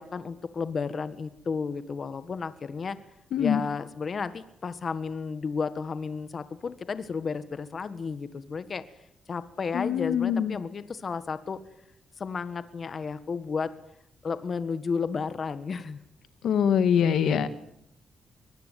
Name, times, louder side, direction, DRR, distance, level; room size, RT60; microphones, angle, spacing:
voice 1, 0.0-3.0 3.4-8.8 9.3-11.6 12.2-13.7 14.2-16.0, left 5 dB, 45° left, 13 dB, 1.6 m, -32 dB
voice 2, 3.3-3.6 9.7-10.6 16.4-17.5, left 8 dB, 80° left, 12 dB, 1.8 m, -23 dB
24.0 x 20.0 x 9.2 m, 0.76 s
cardioid pair, 90°, 0 cm